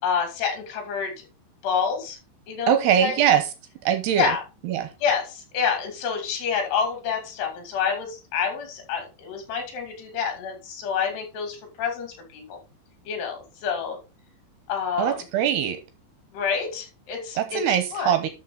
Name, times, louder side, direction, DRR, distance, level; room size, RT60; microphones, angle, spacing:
voice 1, 0.0-1.2 1.6-2.2 2.5-3.1 4.2-4.4 5.0-12.6 13.1-14.0 14.7-15.2 16.3-18.2, left 6 dB, 60° left, 4 dB, 4.3 m, -28 dB
voice 2, 2.7-3.4 3.9-4.3 4.7-4.9 15.0-15.8 17.4-18.3, right 9 dB, 75° right, 9 dB, 2.5 m, -22 dB
12.0 x 6.0 x 3.8 m, 0.30 s
omnidirectional pair, 5.5 m